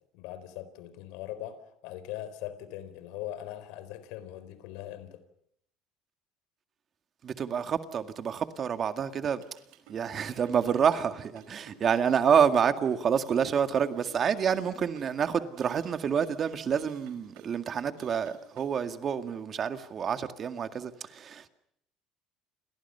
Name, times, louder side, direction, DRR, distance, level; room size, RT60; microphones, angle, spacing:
voice 1, 0.1-5.2, left 12 dB, 80° left, 4.0 m, -41 dB
voice 2, 7.2-9.4 9.9-21.5, right 7 dB, 35° right, 2.0 m, -28 dB
sound 1, 9.3-18.8, right 7 dB, 85° right, 5.0 m, -54 dB
30.0 x 28.0 x 5.7 m
cardioid pair, 135°, 0 cm